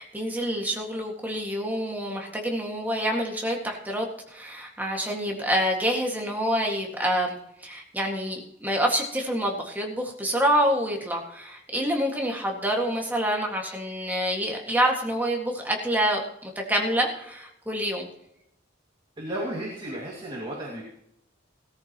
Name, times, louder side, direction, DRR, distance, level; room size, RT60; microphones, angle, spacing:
voice 1, 0.0-18.1, equal, 10° right, 1 dB, 1.9 m, -27 dB
voice 2, 19.2-20.9, right 1 dB, 25° right, -3 dB, 2.2 m, -33 dB
17.5 x 13.5 x 3.0 m, 0.78 s
head